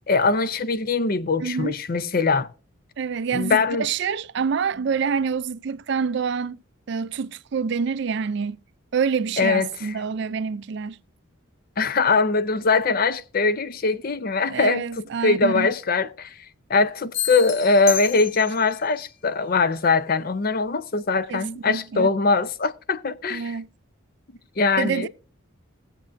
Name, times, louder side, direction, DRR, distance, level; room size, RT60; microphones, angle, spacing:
voice 1, 0.1-2.5 3.3-3.8 9.4-9.7 11.8-14.8 15.2-16.3 16.7-23.5 24.6-25.1, left 4 dB, 45° left, 0.5 m, -22 dB
voice 2, 1.4-1.7 3.0-6.6 6.9-8.6 8.9-11.0 14.5-15.7 21.3-22.1 23.3-23.7 24.8-25.1, right 6 dB, 55° right, 0.4 m, -27 dB
sound 1, 17.1-18.8, left 9 dB, 65° left, 1.0 m, -30 dB
19.5 x 7.5 x 2.5 m
head